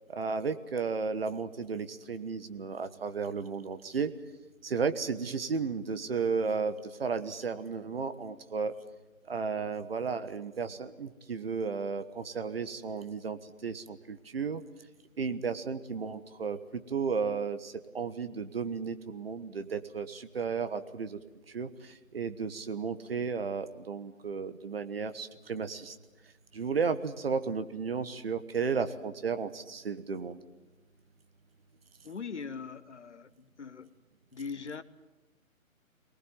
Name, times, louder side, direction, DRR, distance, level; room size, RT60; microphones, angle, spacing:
voice 1, 0.1-4.1 4.6-8.7 9.3-14.6 15.2-21.2 21.5-25.9 26.5-30.4, right 5 dB, 45° right, 10 dB, 1.3 m, -34 dB
voice 2, 32.0-33.9 34.3-34.8, left 5 dB, 55° left, 14 dB, 1.2 m, -41 dB
24.0 x 19.0 x 9.3 m, 1.1 s
figure-of-eight pair, 145°, 42 cm